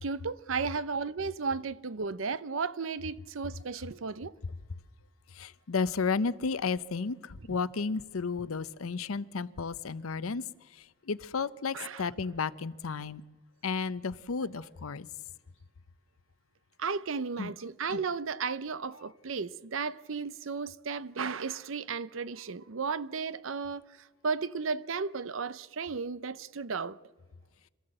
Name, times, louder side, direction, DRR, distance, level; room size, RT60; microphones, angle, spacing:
voice 1, 0.0-4.3 11.7-12.1 14.4-14.5 16.8-23.8 24.2-27.0, right 5 dB, 70° right, 0.7 m, -34 dB
voice 2, 5.3-10.4 11.1-13.2 13.6-15.1 17.4-17.5 17.9-18.0, left 4 dB, 90° left, 0.7 m, -33 dB
26.5 x 14.5 x 7.8 m
head